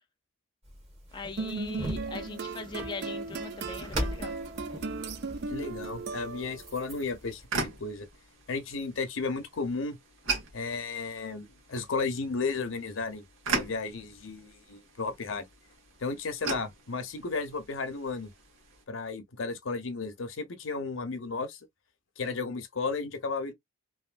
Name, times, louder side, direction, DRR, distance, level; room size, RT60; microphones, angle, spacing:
sound 1, 0.6-7.5, equal, 30° right, 1.3 m, -40 dB
voice 1, 1.1-4.4, left 3 dB, 25° left, 0.4 m, -40 dB
sound 2, 1.1-18.8, right 3 dB, 85° right, 1.4 m, -41 dB
Creole Guitar (Guitarra Criolla) in Dm, 1.4-6.8, right 3 dB, 60° right, 0.5 m, -36 dB
voice 2, 5.5-8.1 8.5-10.0 10.5-15.5 16.0-18.3 18.9-21.6 22.2-23.5, left 4 dB, 75° left, 0.8 m, -34 dB
3.1 x 2.6 x 2.4 m
head